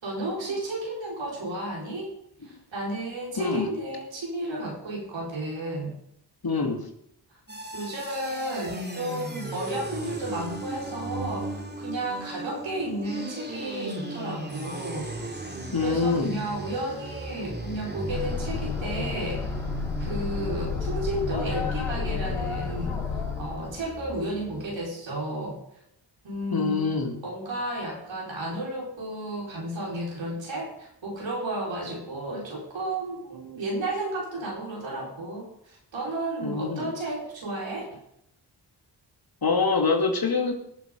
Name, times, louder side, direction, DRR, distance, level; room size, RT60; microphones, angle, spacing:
voice 1, 0.0-2.1 2.4-5.9 7.7-15.1 15.8-19.4 20.0-23.0 23.4-25.6 26.2-26.9 27.2-38.0, right 1 dB, 80° right, -2 dB, 4.8 m, -33 dB
voice 2, 3.4-3.7 6.4-6.8 15.7-16.4 26.5-27.2 36.4-36.9 39.4-40.5, left 4 dB, 55° left, 3 dB, 2.7 m, -25 dB
sound 1, 7.5-24.8, right 2 dB, 25° right, 2.7 m, -37 dB
sound 2, 18.1-23.9, left 5 dB, 85° left, 5.8 m, -31 dB
18.5 x 7.4 x 5.3 m, 0.75 s
cardioid pair, 45°, 44 cm